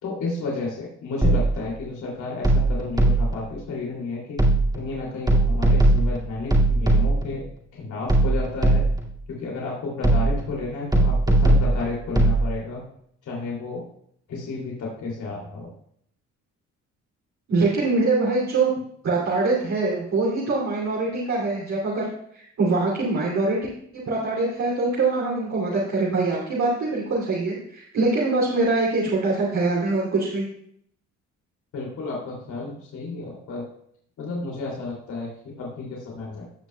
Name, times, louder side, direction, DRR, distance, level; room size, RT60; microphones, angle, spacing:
voice 1, 0.0-4.5 4.7-7.5 7.7-8.9 9.3-12.8 13.2-13.9 14.3-15.7 31.7-33.7 34.2-36.5, left 3 dB, 75° left, -3 dB, 2.8 m, -32 dB
sound 1, 1.2-1.7 2.4-3.5 4.4-4.9 5.3-7.4 8.1-9.1 10.0-10.6 10.9-12.4, right 2 dB, 15° right, 2.2 m, -19 dB
voice 2, 17.5-18.7 19.0-22.0 22.3-23.6 24.0-30.4, right 3 dB, 65° right, -6 dB, 2.8 m, -23 dB
16.5 x 6.1 x 2.3 m, 0.67 s
cardioid pair, 90°, 30 cm